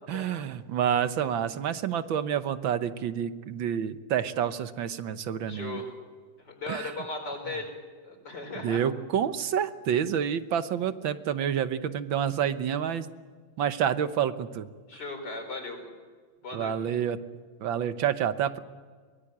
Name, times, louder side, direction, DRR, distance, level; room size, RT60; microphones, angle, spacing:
voice 1, 0.1-5.8 6.7-6.9 8.6-13.1 13.6-14.7 16.5-17.2 17.6-18.6, right 9 dB, 85° right, 11 dB, 1.8 m, -28 dB
voice 2, 5.5-5.9 6.4-7.7 8.0-8.9 14.9-15.9 16.4-16.8, left 2 dB, 60° left, 5 dB, 5.3 m, -37 dB
23.0 x 20.0 x 8.7 m, 1.5 s
omnidirectional pair, 2.1 m